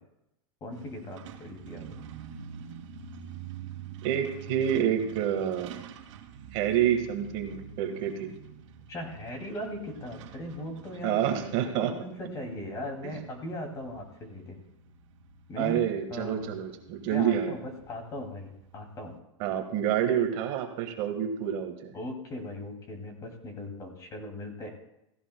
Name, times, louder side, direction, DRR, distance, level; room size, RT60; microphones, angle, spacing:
voice 1, 0.6-2.1 8.9-11.2 11.7-14.6 15.5-16.5 17.1-19.2 21.9-24.7, left 1 dB, 20° left, 3 dB, 2.4 m, -39 dB
Truck, 0.7-19.2, right 8 dB, 75° right, 1.9 m, -47 dB
voice 2, 4.0-5.7 6.5-8.3 11.0-11.9 13.0-13.1 15.6-17.5 19.4-21.9, right 9 dB, 40° right, 4 dB, 1.5 m, -28 dB
16.0 x 15.5 x 2.2 m, 0.87 s
supercardioid pair, 160°, 16 cm